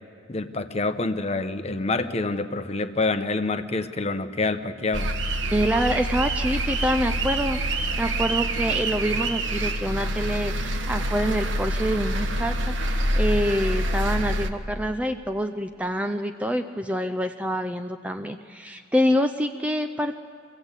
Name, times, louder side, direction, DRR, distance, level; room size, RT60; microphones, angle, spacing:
voice 1, 0.3-5.1, left 3 dB, 30° left, 9 dB, 0.8 m, -27 dB
sound 1, 4.9-14.5, right 1 dB, 65° right, 1.1 m, -26 dB
voice 2, 5.5-20.1, equal, 5° right, 6 dB, 0.5 m, -26 dB
24.0 x 16.0 x 8.2 m, 2.2 s
head